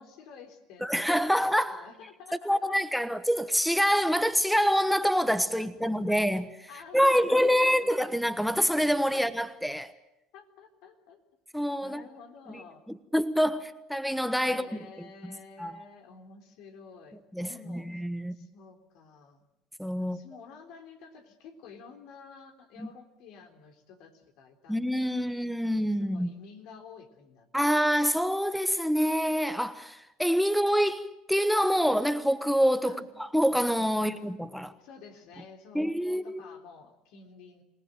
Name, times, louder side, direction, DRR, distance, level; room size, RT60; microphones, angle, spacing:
voice 1, 0.0-3.0 5.6-5.7 6.1-6.2 6.7-8.2 9.1-9.3 10.3-11.2 11.8-12.8 14.4-18.0 18.3-19.4 20.0-27.5 32.8-33.1 34.0-34.2 34.7-37.6, left 5 dB, 65° left, 3.7 m, -50 dB
voice 2, 0.8-1.8 2.4-9.9 11.5-12.0 12.5-12.6 12.9-14.7 15.2-15.8 17.3-18.4 19.8-20.2 22.8-22.9 24.7-26.3 27.5-33.0 33.3-34.7 35.7-36.4, equal, ahead, 1.2 m, -26 dB
26.5 x 18.5 x 9.1 m
hypercardioid pair, 80°, 0 cm